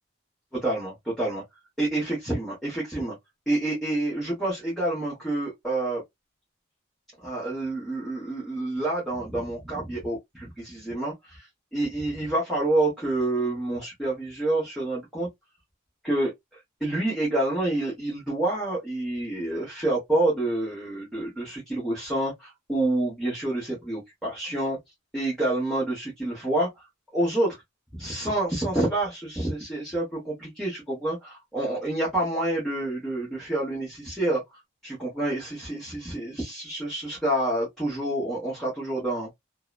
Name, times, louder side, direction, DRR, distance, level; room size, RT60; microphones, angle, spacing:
voice 1, 0.5-1.4 1.8-3.1 3.5-6.0 7.2-15.3 16.0-16.3 16.8-24.8 25.1-26.8 27.1-27.6 28.0-39.3, right 1 dB, ahead, 1.0 m, -28 dB
2.8 x 2.0 x 2.3 m
head